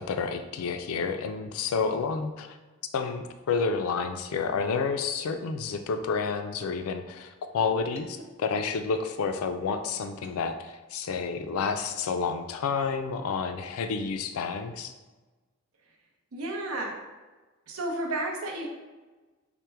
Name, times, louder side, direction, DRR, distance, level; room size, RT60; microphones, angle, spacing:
voice 1, 0.0-2.6 2.9-14.9, left 5 dB, 80° left, 8 dB, 0.3 m, -30 dB
voice 2, 16.3-17.0 17.7-18.7, right 1 dB, 80° right, 1 dB, 0.7 m, -32 dB
4.3 x 2.1 x 3.3 m, 1.2 s
head